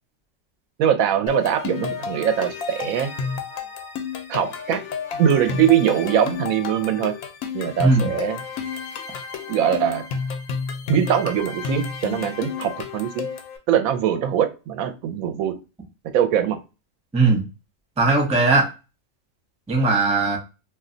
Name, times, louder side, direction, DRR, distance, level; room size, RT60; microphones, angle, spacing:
voice 1, 0.8-3.1 4.3-4.8 5.2-7.1 7.5-8.4 9.5-10.0 10.9-13.3 13.7-15.5 16.1-16.6, right 9 dB, 90° right, 7 dB, 1.0 m, -22 dB
sound 1, 1.3-13.6, left 5 dB, 80° left, 1.0 m, -31 dB
voice 2, 7.8-8.1 17.1-17.4 18.0-18.7 19.7-20.4, right 3 dB, 10° right, -1 dB, 0.3 m, -18 dB
2.6 x 2.1 x 3.7 m, 0.30 s
omnidirectional pair, 1.4 m